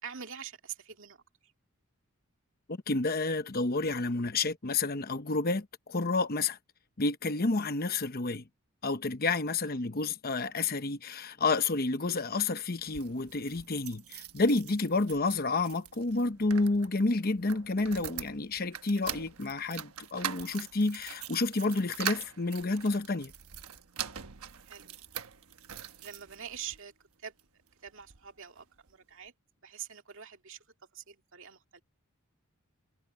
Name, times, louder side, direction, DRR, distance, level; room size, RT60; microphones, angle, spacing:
voice 1, 0.0-1.2 9.6-9.8 24.6-25.0 26.0-26.9 27.2-27.3 27.8-29.3 29.6-30.6 30.9-31.8, right 8 dB, 60° right, 2.4 m, -45 dB
voice 2, 2.7-6.6 7.0-8.4 8.8-23.3, left 3 dB, 45° left, 0.9 m, -30 dB
sound 1, 12.8-26.8 27.4-28.3 28.6-28.7 28.9-29.0, right 9 dB, 85° right, 1.2 m, -43 dB
head